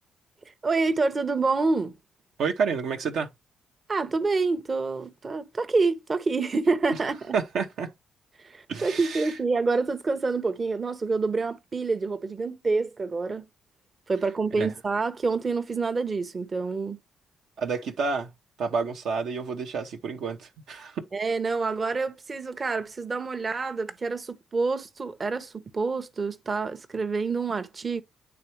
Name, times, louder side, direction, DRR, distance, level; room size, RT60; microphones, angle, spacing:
voice 1, 0.5-1.9 3.9-7.4 8.4-13.4 14.1-17.0 21.1-28.0, right 4 dB, 40° right, 0.8 m, -27 dB
voice 2, 2.4-3.3 7.3-7.9 8.7-9.3 14.6-14.7 17.6-18.3 18.6-21.0, right 5 dB, 70° right, 0.8 m, -29 dB
8.9 x 3.4 x 3.1 m
hypercardioid pair, 50°, 0 cm